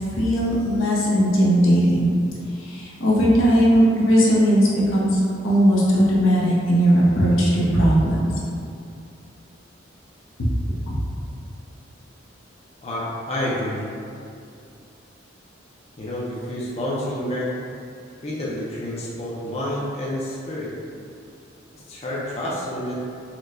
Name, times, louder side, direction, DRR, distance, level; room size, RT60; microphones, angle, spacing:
voice 1, 0.1-2.1 2.6-8.2 10.4-10.5 10.9-11.0, equal, 90° left, -5 dB, 0.7 m, -18 dB
voice 2, 12.8-13.9 16.0-17.6 18.2-20.8 21.9-23.1, left 1 dB, 30° left, -6 dB, 0.4 m, -29 dB
4.3 x 2.1 x 2.5 m, 2.5 s
head